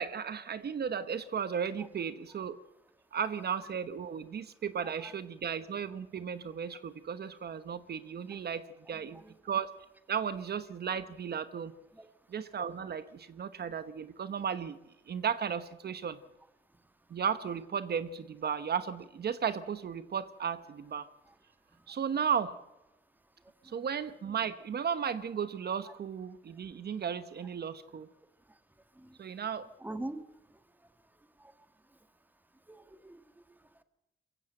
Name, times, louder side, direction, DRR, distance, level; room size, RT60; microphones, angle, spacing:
voice 1, 0.0-2.6 3.1-9.7 10.1-11.7 12.3-14.8 15.1-16.2 17.1-21.1 21.9-22.5 23.6-28.1 29.2-29.7, right 7 dB, 55° right, 12 dB, 1.0 m, -35 dB
voice 2, 4.8-5.1 8.3-8.4 9.1-9.3 11.9-12.1 21.7-21.8 23.6-23.7 28.5-28.6 28.9-29.2 29.8-30.2 30.5-30.6 31.2-31.5 32.7-33.6, right 1 dB, 10° right, 9 dB, 1.6 m, -45 dB
22.5 x 15.5 x 7.9 m, 0.97 s
cardioid pair, 95°, 20 cm